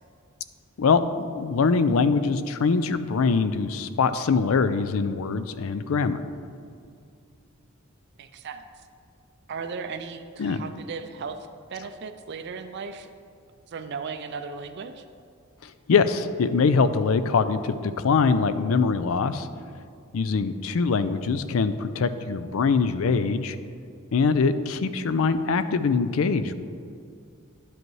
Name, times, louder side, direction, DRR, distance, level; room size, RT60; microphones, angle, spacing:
voice 1, 0.8-6.2 10.4-10.6 15.6-19.5 20.1-23.6 24.1-26.5, left 4 dB, 70° left, 12 dB, 0.4 m, -23 dB
voice 2, 8.2-8.6 9.5-13.1 13.7-15.0, right 5 dB, 55° right, 7 dB, 0.4 m, -36 dB
10.5 x 7.7 x 3.2 m, 2.4 s
head